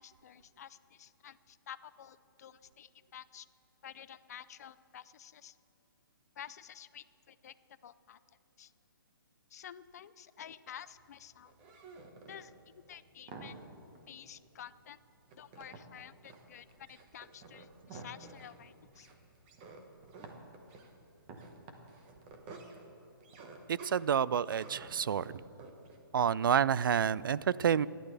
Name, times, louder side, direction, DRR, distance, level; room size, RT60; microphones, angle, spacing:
voice 1, 0.0-3.5 3.8-5.6 6.4-7.5 7.8-8.2 8.6-8.7 9.5-11.5 12.3-13.6 14.1-15.0 15.4-19.1, left 9 dB, 45° left, 14 dB, 0.5 m, -51 dB
sound 1, 10.7-26.0, right 3 dB, 25° right, 1.3 m, -52 dB
voice 2, 23.7-25.3 26.1-27.9, right 8 dB, 65° right, 20 dB, 0.4 m, -29 dB
27.5 x 11.5 x 3.4 m, 2.6 s
hypercardioid pair, 160°, 12 cm